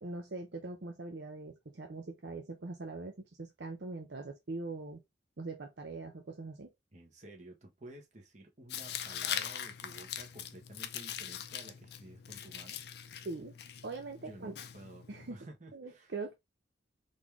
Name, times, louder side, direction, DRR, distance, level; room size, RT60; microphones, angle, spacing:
voice 1, 0.0-5.0 5.4-6.7 13.2-13.5 13.8-14.5 15.1-15.4 15.7-16.3, right 3 dB, 65° right, 0.7 m, -42 dB
voice 2, 6.9-12.8 14.2-16.1, right 1 dB, 40° right, 1.4 m, -53 dB
Tearing, 8.7-15.3, left 9 dB, 60° left, 0.5 m, -42 dB
4.1 x 3.3 x 3.5 m
head